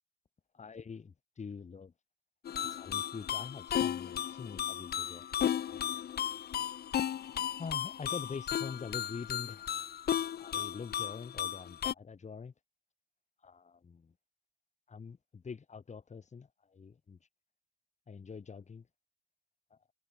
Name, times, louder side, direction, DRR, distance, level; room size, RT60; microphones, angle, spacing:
voice 1, 0.5-1.9 2.7-5.3 5.7-5.9 7.6-9.7 10.4-12.5 13.4-14.1 14.9-17.2 18.1-18.9 19.7-19.8, left 5 dB, 45° left, 3.4 m, -45 dB
sound 1, 2.5-11.9, left 10 dB, 75° left, 0.6 m, -35 dB
wide cardioid pair, 155°, 16 cm